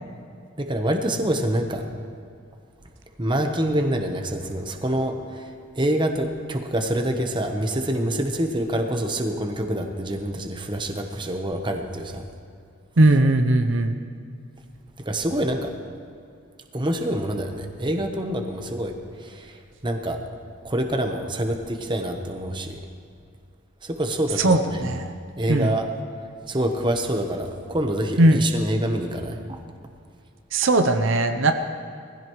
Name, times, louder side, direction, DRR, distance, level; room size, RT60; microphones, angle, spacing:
voice 1, 0.6-1.8 3.2-5.5 5.8-12.2 15.0-15.7 16.7-18.9 19.2-20.2 20.6-22.8 23.8-24.8 25.4-25.9 26.5-29.6, right 1 dB, 20° right, 4 dB, 1.0 m, -26 dB
voice 2, 13.0-14.0 24.4-25.1 25.5-25.7 28.2-28.4 30.5-31.5, right 2 dB, 65° right, 7 dB, 0.7 m, -19 dB
20.5 x 15.5 x 3.2 m, 2.3 s
head